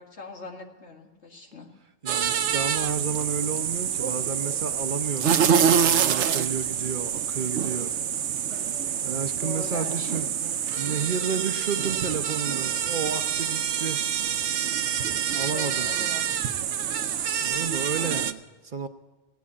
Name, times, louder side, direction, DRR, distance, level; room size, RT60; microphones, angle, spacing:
voice 1, 0.0-1.7 9.4-10.2 15.5-16.3, left 3 dB, 75° left, 2 dB, 2.2 m, -40 dB
voice 2, 2.0-7.9 9.0-10.3 10.8-14.0 15.3-15.9 17.4-18.9, right 6 dB, 50° right, 9 dB, 0.8 m, -32 dB
sound 1, 2.1-18.3, right 8 dB, 80° right, 1.0 m, -26 dB
17.5 x 9.3 x 8.4 m, 1.3 s
omnidirectional pair, 1.2 m